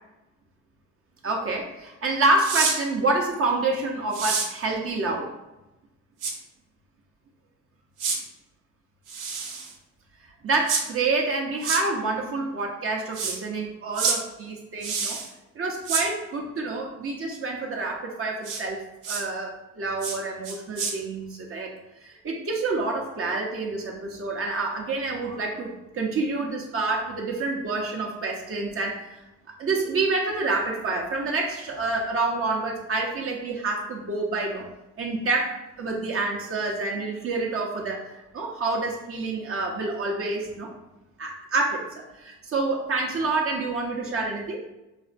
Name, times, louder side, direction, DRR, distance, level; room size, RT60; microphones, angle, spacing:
voice 1, 1.2-5.3 10.4-15.2 15.6-18.8 19.1-21.7 22.0-29.2 29.6-34.6 35.0-40.7 41.2-44.6, right 3 dB, 45° right, 0 dB, 0.6 m, -28 dB
sound 1, 2.4-2.8 4.1-4.5 6.2-6.3 8.0-8.2 9.1-9.7 10.7-10.8 11.6-11.8 13.1-13.4 13.9-14.2 14.8-15.3 15.8-16.0 18.4-18.6 19.0-19.2 20.0-20.2 20.4-20.9, right 5 dB, 85° right, 0.7 m, -27 dB
4.9 x 2.1 x 2.5 m, 0.98 s
cardioid pair, 90°, 30 cm